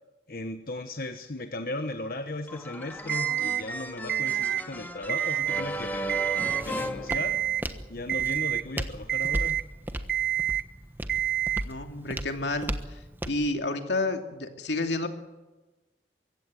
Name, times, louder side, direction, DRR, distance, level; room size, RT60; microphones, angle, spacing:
voice 1, 0.3-6.2 6.6-7.4 7.9-9.6, left 2 dB, 55° left, 7 dB, 1.2 m, -36 dB
sound 1, 2.5-7.9, equal, 10° left, 1.8 m, -36 dB
Alarm, 3.1-3.6 4.1-4.6 5.0-5.6 6.1-6.6 7.1-7.6 8.1-8.6 9.1-9.6 10.1-10.6 11.1-11.6, right 12 dB, 55° right, 0.8 m, -28 dB
Walk footsteps, 5.4-13.5, right 1 dB, 10° right, 1.2 m, -37 dB
voice 2, 11.6-13.0 13.3-15.1, left 2 dB, 85° left, 5 dB, 2.6 m, -30 dB
24.0 x 16.0 x 9.3 m, 1.2 s
head